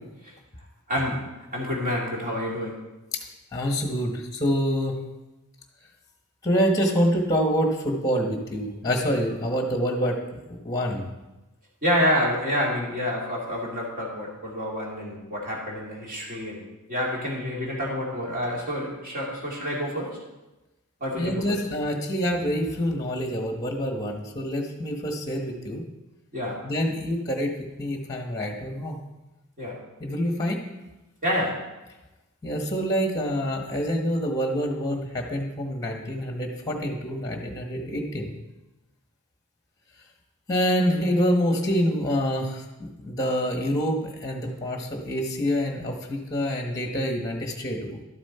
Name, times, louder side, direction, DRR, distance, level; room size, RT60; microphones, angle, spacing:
voice 1, 0.9-1.2 1.5-2.7 11.8-16.6 16.9-20.2 21.0-21.6 26.3-26.6 29.6-29.7 31.2-31.5, equal, 40° right, -4 dB, 2.9 m, -28 dB
voice 2, 3.5-5.0 6.4-10.2 10.6-11.0 21.1-25.8 26.6-29.0 30.0-30.6 32.4-38.3 40.5-48.0, equal, 15° left, 2 dB, 1.2 m, -26 dB
12.0 x 7.3 x 4.4 m, 1.1 s
head